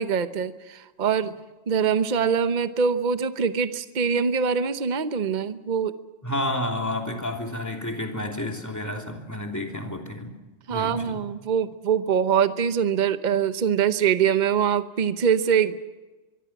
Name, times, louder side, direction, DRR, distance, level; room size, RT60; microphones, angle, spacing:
voice 1, 0.0-1.4 1.7-5.9 10.7-15.8, right 7 dB, 40° right, 11 dB, 1.0 m, -23 dB
voice 2, 6.2-10.3 10.7-11.3, left 1 dB, 15° left, 2 dB, 3.0 m, -30 dB
24.5 x 23.0 x 6.0 m, 1.2 s
omnidirectional pair, 1.3 m